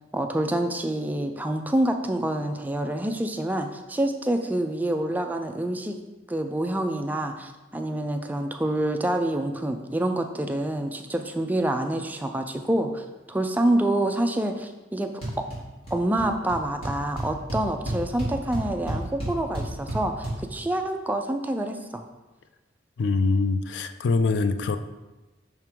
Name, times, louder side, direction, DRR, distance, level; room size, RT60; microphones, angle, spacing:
voice 1, 0.1-6.0 6.3-15.1 15.4-15.5 15.9-22.0, right 1 dB, 10° right, 5 dB, 0.3 m, -27 dB
sound 1, 15.2-15.6 15.8-16.2 16.5-16.6 16.8-20.3, right 1 dB, 30° left, 2.1 m, -30 dB
voice 2, 23.0-24.8, left 3 dB, 75° left, 10 dB, 0.4 m, -23 dB
5.8 x 3.6 x 4.4 m, 1.1 s
head